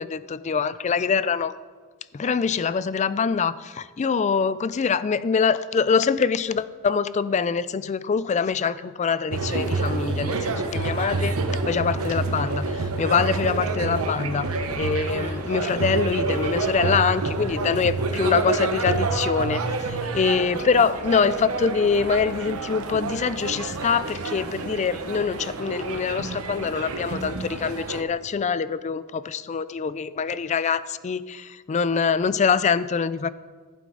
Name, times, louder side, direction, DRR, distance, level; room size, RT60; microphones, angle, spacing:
voice 1, 0.0-1.5 2.1-11.4 11.7-19.7 20.1-33.3, left 6 dB, 30° left, 15 dB, 0.3 m, -24 dB
sound 1, 9.3-28.0, right 3 dB, 75° right, 0.9 m, -28 dB
14.5 x 8.4 x 3.9 m, 1.5 s
head